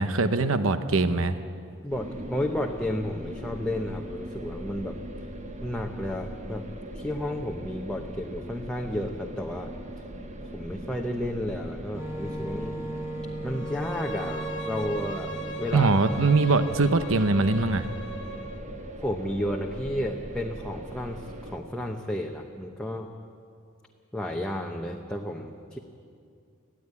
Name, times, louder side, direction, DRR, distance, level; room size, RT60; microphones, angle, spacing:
voice 1, 0.0-1.4 15.7-17.9, right 3 dB, 65° right, 10 dB, 0.9 m, -22 dB
voice 2, 1.8-5.0 5.6-6.6 6.9-9.7 10.5-12.7 13.4-15.9 18.9-23.1 24.1-25.8, left 1 dB, 5° left, 1 dB, 0.9 m, -32 dB
sound 1, 1.9-21.6, equal, 35° right, 1.2 m, -40 dB
Wind instrument woodwind instrument, 11.9-16.6, right 1 dB, 15° right, 1.6 m, -37 dB
Bowed string instrument, 13.5-18.6, right 1 dB, 60° left, 1.5 m, -39 dB
20.5 x 14.5 x 9.6 m, 2.4 s
head